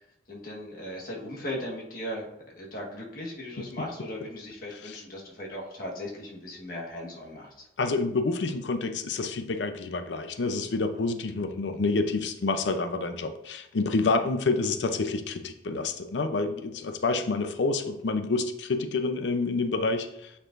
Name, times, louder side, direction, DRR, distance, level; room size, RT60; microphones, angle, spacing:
voice 1, 0.3-2.3 2.5-7.7, left 1 dB, 55° left, -2 dB, 1.3 m, -37 dB
voice 2, 7.8-20.3, left 3 dB, 90° left, 8 dB, 0.6 m, -28 dB
8.8 x 4.7 x 2.5 m, 0.83 s
head